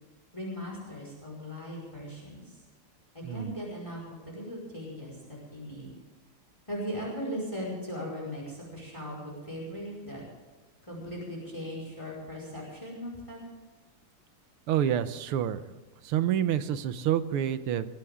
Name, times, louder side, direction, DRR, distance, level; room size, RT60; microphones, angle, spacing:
voice 1, 0.3-2.6 3.1-5.9 6.7-10.2 10.9-13.4, equal, 15° left, -2 dB, 5.1 m, -38 dB
voice 2, 3.2-3.5 14.7-15.7 16.0-17.9, right 10 dB, 85° right, 12 dB, 1.8 m, -28 dB
21.0 x 16.0 x 3.7 m, 1.3 s
omnidirectional pair, 2.3 m